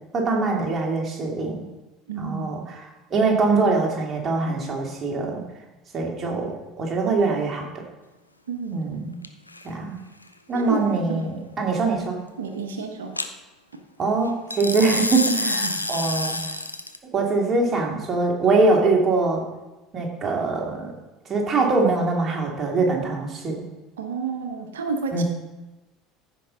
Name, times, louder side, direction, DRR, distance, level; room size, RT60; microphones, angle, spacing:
voice 1, 0.1-1.6 2.2-2.9 3.1-5.4 5.9-7.7 8.7-9.1 9.6-10.0 10.5-12.2 14.0-16.4 17.1-19.4 19.9-20.9 21.3-23.6 25.1-25.2, right 3 dB, 30° right, 0 dB, 2.3 m, -23 dB
voice 2, 2.1-2.5 8.5-8.8 10.5-11.3 12.4-13.2 13.7-13.8 15.3-15.9 24.0-25.2, right 4 dB, 70° right, 6 dB, 1.1 m, -30 dB
sound 1, 9.2-9.6 13.2-13.3 14.5-17.0, left 2 dB, 90° left, 0.5 m, -27 dB
14.5 x 5.4 x 3.9 m, 1.1 s
figure-of-eight pair, 70°, 0 cm